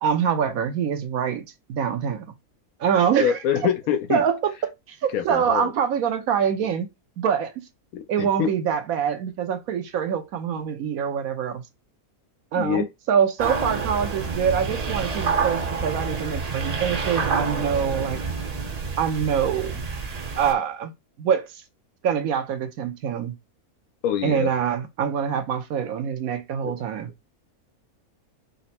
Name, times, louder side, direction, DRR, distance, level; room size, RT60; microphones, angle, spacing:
voice 1, 0.0-2.2 2.8-3.4 4.1-6.9 7.2-7.6 8.1-11.6 12.5-18.2 19.0-19.9 20.4-20.9 21.2-21.6 22.0-23.3 24.2-27.1, right 8 dB, 80° right, 1.2 m, -25 dB
voice 2, 3.2-4.2 5.1-5.7 7.9-8.5 12.6-12.9 24.0-24.5 26.6-26.8, left 9 dB, 80° left, 1.1 m, -25 dB
sound 1, 13.4-20.5, right 4 dB, 40° right, 0.7 m, -28 dB
5.4 x 2.1 x 4.1 m
omnidirectional pair, 1.5 m